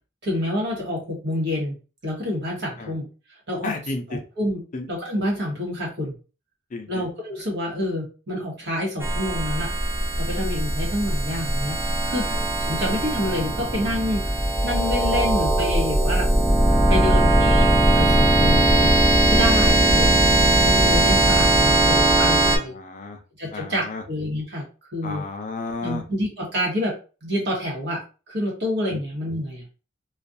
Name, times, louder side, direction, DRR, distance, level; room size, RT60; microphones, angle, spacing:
voice 1, 0.2-1.7 2.0-3.1 3.5-3.7 4.1-4.6 4.9-6.1 6.9-9.7 10.2-12.3 12.6-14.3 14.6-16.3 16.9-19.0 19.3-20.1 20.6-22.7 23.4-24.6 24.9-25.2 25.8-26.9 27.2-28.0 28.3-29.6, left 1 dB, 60° right, -3 dB, 1.1 m, -27 dB
voice 2, 3.6-4.2 4.7-4.9 6.7-7.0 12.2-12.5 16.7-17.3 19.8-20.1 22.4-23.2 23.5-24.0 25.0-26.0 28.9-29.0, left 3 dB, 40° left, 5 dB, 0.5 m, -33 dB
sound 1, 9.0-22.6, right 1 dB, 15° right, 0.5 m, -19 dB
2.4 x 2.3 x 2.6 m, 0.34 s
head